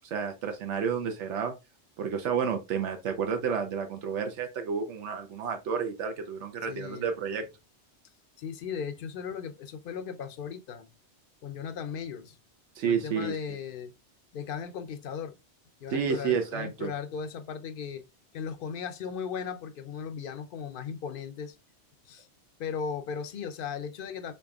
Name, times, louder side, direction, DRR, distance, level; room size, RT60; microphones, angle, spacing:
voice 1, 0.1-1.5 2.0-7.4 12.8-13.3 15.9-16.9, right 6 dB, 85° right, 1.0 m, -30 dB
voice 2, 6.7-7.1 8.4-10.9 11.4-12.4 12.8-13.9 14.3-15.4 15.8-18.0 18.3-21.6 22.1-22.3 22.6-24.3, left 6 dB, 60° left, 0.6 m, -37 dB
4.1 x 3.3 x 2.3 m
omnidirectional pair, 1.2 m